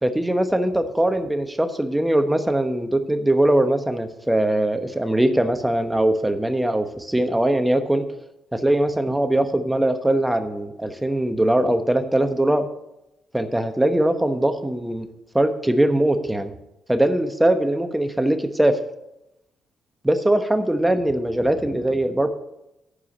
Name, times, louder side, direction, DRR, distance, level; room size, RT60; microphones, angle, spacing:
voice 1, 0.0-8.0 8.5-12.6 13.3-15.1 15.3-16.5 16.9-18.7 20.0-22.3, right 1 dB, 10° right, 8 dB, 1.1 m, -21 dB
11.0 x 4.8 x 7.2 m, 0.87 s
cardioid pair, 90°, 0 cm